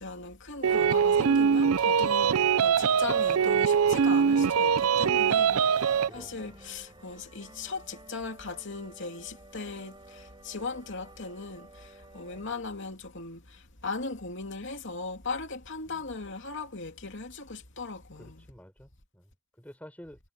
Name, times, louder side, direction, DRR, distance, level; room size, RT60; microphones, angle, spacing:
voice 1, 0.0-18.5, left 4 dB, 60° left, 2.9 m, -38 dB
sound 1, 0.6-6.1, right 7 dB, 80° right, 0.5 m, -23 dB
sound 2, 2.3-12.5, right 2 dB, 20° right, 5.6 m, -53 dB
voice 2, 6.1-6.6 12.3-12.5 15.9-16.0 18.2-18.9 19.1-19.3 19.6-20.2, equal, 5° left, 7.0 m, -49 dB
head